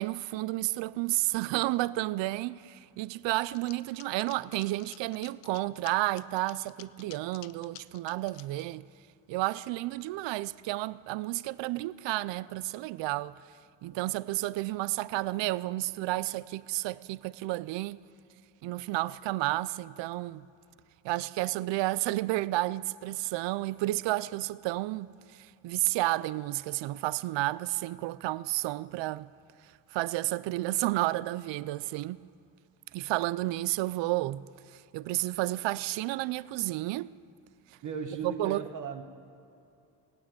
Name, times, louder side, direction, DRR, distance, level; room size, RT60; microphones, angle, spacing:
voice 1, 0.0-8.9 9.3-13.4 13.8-18.0 18.6-20.5 21.0-29.3 29.9-32.2 32.9-37.1 38.2-38.7, right 18 dB, 80° right, 0.5 m, -31 dB
sound 1, 3.4-8.6, left 16 dB, 90° left, 0.6 m, -50 dB
voice 2, 37.8-39.0, right 5 dB, 45° right, 1.0 m, -37 dB
18.5 x 8.9 x 8.8 m
cardioid pair, 155°, 43 cm